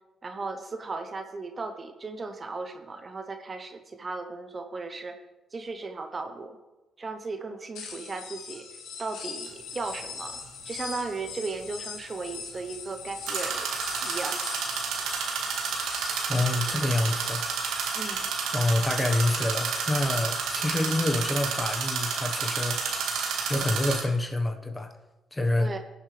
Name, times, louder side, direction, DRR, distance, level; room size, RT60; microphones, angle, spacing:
voice 1, 0.2-5.2 5.5-6.6 7.0-8.7 9.0-10.4 10.7-13.7 14.0-14.4 17.9-18.3 25.6-25.8, right 3 dB, 35° right, 7 dB, 0.9 m, -36 dB
sound 1, 7.8-17.2, left 6 dB, 90° left, 1.9 m, -41 dB
sound 2, 9.5-9.6 13.3-24.0, right 5 dB, 85° right, 1.9 m, -30 dB
voice 2, 16.3-17.4 18.5-22.8 23.5-24.9 25.3-25.7, left 2 dB, 15° left, 5 dB, 1.3 m, -27 dB
18.5 x 7.5 x 3.4 m, 1.1 s
cardioid pair, 90°, 0 cm